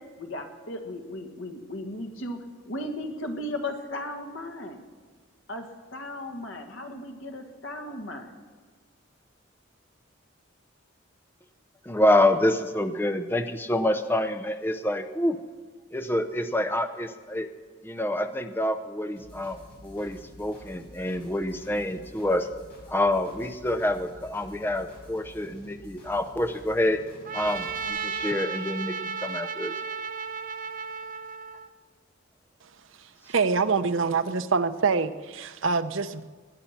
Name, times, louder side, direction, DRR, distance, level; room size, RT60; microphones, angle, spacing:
voice 1, 0.0-4.8 5.5-8.4, left 1 dB, 75° left, 4 dB, 1.8 m, -36 dB
voice 2, 11.8-15.4 15.9-17.5 17.8-22.5 22.9-27.0 27.3-29.7, left 1 dB, 10° left, 8 dB, 0.6 m, -27 dB
sound 1, 19.2-27.9, equal, 50° left, 5.4 m, -49 dB
Trumpet, 27.2-31.7, right 5 dB, 45° right, 0.6 m, -34 dB
voice 3, 33.3-36.2, right 4 dB, 75° right, 11 dB, 0.7 m, -25 dB
18.5 x 10.0 x 5.9 m, 1.5 s
head